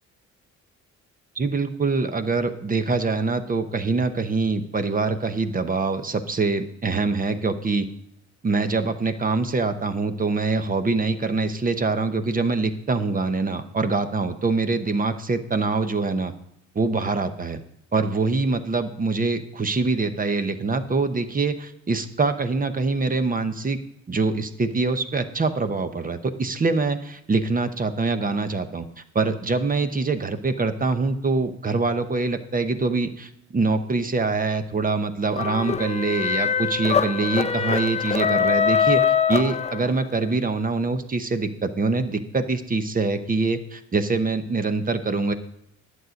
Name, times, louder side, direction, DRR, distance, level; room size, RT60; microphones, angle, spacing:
voice 1, 1.3-7.9 8.4-16.3 16.7-17.6 17.9-23.8 24.1-28.8 29.1-45.3, right 3 dB, 30° right, 9 dB, 1.0 m, -24 dB
sound 1, 35.3-40.2, left 7 dB, 20° left, 0.6 m, -23 dB
11.0 x 8.0 x 5.2 m, 0.77 s
cardioid pair, 90°, 30 cm